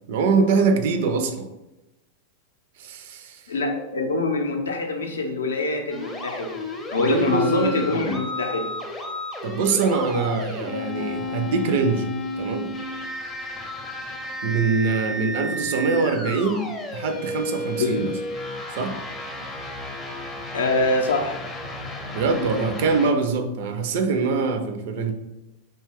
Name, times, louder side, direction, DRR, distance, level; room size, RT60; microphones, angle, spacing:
voice 1, 0.1-1.5 2.8-3.4 7.0-8.2 9.4-12.1 12.4-12.7 14.4-18.1 18.7-19.0 22.1-25.1, right 4 dB, 50° right, 6 dB, 0.3 m, -23 dB
voice 2, 3.5-6.5 6.9-8.7 17.8-18.1 20.5-21.5, left 3 dB, 70° left, 3 dB, 0.4 m, -24 dB
sound 1, 5.9-23.1, left 1 dB, 15° left, 0.5 m, -33 dB
Acoustic guitar, 11.0-14.5, right 2 dB, 85° right, 0.8 m, -44 dB
2.6 x 2.2 x 3.5 m, 0.98 s
figure-of-eight pair, 90°, 0 cm